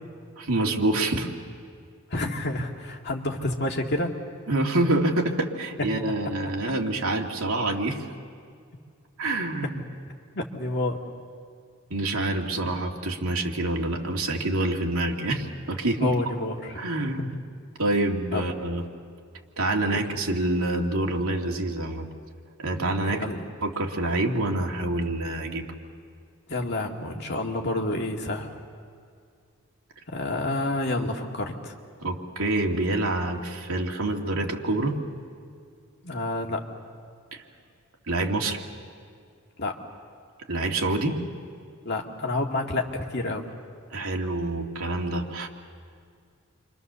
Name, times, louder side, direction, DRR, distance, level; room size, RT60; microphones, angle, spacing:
voice 1, 0.4-1.3 4.5-8.0 9.2-9.8 11.9-16.1 16.7-17.4 17.8-18.8 19.6-22.1 22.6-23.2 23.6-25.6 32.0-35.0 37.3-37.4 38.1-38.6 40.5-41.2 43.9-45.5, right 2 dB, 80° right, 1 dB, 2.4 m, -26 dB
voice 2, 2.1-4.1 10.4-11.0 16.0-16.8 17.2-17.3 18.3-18.4 23.1-23.4 26.5-28.5 30.1-31.7 36.0-36.6 39.6-39.7 41.9-43.5, left 2 dB, 50° left, 1 dB, 2.2 m, -29 dB
29.5 x 25.0 x 7.0 m, 2.2 s
head